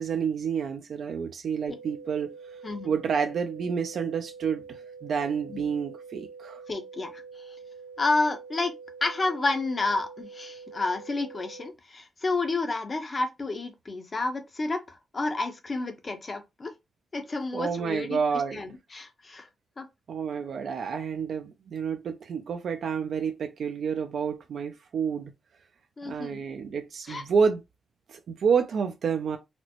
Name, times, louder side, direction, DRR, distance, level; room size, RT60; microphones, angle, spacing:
voice 1, 0.0-2.3 2.8-6.6 17.5-18.6 20.1-25.3 26.0-27.6 28.1-29.4, right 6 dB, 55° right, 0.4 m, -29 dB
sound 1, 1.7-11.7, right 5 dB, 80° right, 1.1 m, -45 dB
voice 2, 6.7-7.2 8.0-16.7 17.1-19.5 19.8-19.9 26.0-26.4 27.1-27.2, left 3 dB, 25° left, 0.6 m, -30 dB
4.2 x 2.0 x 2.9 m
wide cardioid pair, 165°, 0 cm